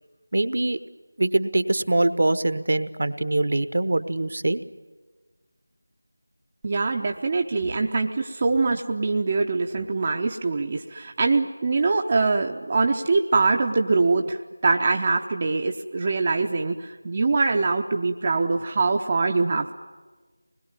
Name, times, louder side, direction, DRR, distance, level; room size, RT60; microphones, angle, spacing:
voice 1, 0.3-0.8 1.2-4.6, right 2 dB, 50° right, 13 dB, 1.0 m, -23 dB
voice 2, 6.6-19.7, right 3 dB, 25° right, 3 dB, 0.7 m, -23 dB
25.5 x 20.5 x 9.7 m, 1.4 s
figure-of-eight pair, 165°, 0 cm